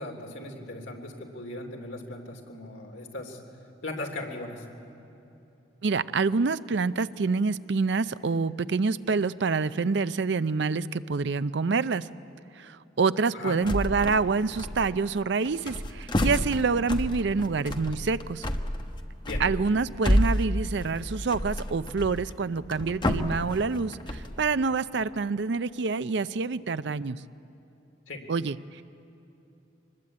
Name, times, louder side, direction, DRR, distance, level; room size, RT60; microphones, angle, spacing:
voice 1, 0.0-3.4 3.8-4.7 13.3-13.6 19.2-19.4 28.1-28.2, left 2 dB, 85° left, 2 dB, 3.2 m, -38 dB
voice 2, 5.8-12.1 12.6-18.5 19.4-27.2 28.3-28.8, right 4 dB, 60° right, 15 dB, 0.5 m, -27 dB
sound 1, 13.6-14.3 14.5-15.1 15.4-24.4, equal, 25° left, 1.0 m, -29 dB
24.5 x 20.5 x 8.6 m, 3.0 s
head